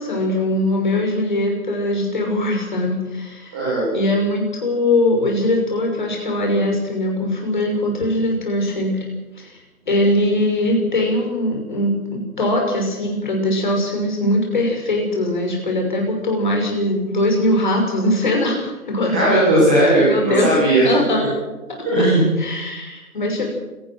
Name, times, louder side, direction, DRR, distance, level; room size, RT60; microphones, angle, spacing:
voice 1, 0.0-3.7 3.9-9.0 9.4-9.6 9.9-18.6 18.9-19.3 19.9-20.5 20.8-21.3 22.4-23.5, left 1 dB, 30° left, 1 dB, 5.8 m, -21 dB
voice 2, 3.5-3.9 19.1-20.9 21.9-22.3, right 1 dB, 5° right, -8 dB, 1.8 m, -16 dB
28.0 x 17.0 x 6.2 m, 1.1 s
figure-of-eight pair, 175°, 45 cm